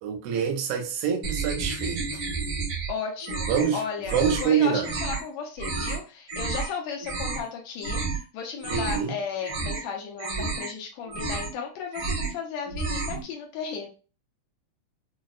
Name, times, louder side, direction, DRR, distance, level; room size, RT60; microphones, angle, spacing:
voice 1, 0.0-2.2 3.5-3.8 4.1-4.9 8.7-9.1, right 7 dB, 80° right, 2 dB, 1.4 m, -26 dB
sound 1, 1.2-2.9 3.2-3.7 4.0-4.5 4.8-5.2 5.6-6.0 6.3-6.7 7.0-7.5 7.8-8.2 8.5-9.1 9.4-9.9 10.2-10.7 11.0-11.6 11.9-12.4 12.7-13.2, right 4 dB, 60° right, 1.4 m, -31 dB
voice 2, 2.9-13.9, left 6 dB, 80° left, 1 dB, 1.6 m, -35 dB
5.9 x 2.0 x 2.4 m, 0.36 s
omnidirectional pair, 3.7 m